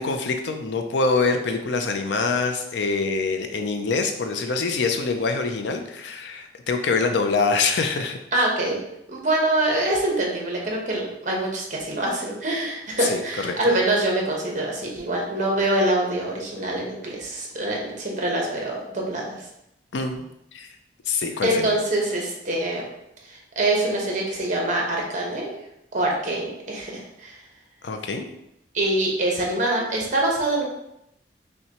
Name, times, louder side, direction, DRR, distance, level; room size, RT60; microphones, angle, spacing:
voice 1, 0.0-8.2 13.0-13.5 19.9-20.2 20.5-20.7 21.1-21.7 27.8-28.3, left 4 dB, 85° left, 5 dB, 0.5 m, -25 dB
voice 2, 8.3-8.8 9.1-19.3 21.4-22.9 23.3-25.5 25.9-26.9 27.2-27.4 28.7-30.6, right 1 dB, 45° right, -1 dB, 0.9 m, -24 dB
5.6 x 2.2 x 2.9 m, 0.82 s
head